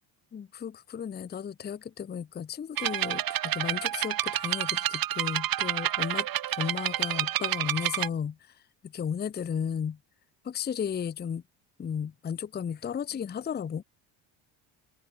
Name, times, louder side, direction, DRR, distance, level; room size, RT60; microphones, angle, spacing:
voice 1, 0.3-6.3 6.6-8.4 8.8-10.0 10.4-11.4 11.8-13.8, left 7 dB, 20° left, 0.6 m, -34 dB
sound 1, 2.8-8.1, right 12 dB, 45° right, 1.2 m, -29 dB
supercardioid pair, 90°, 48 cm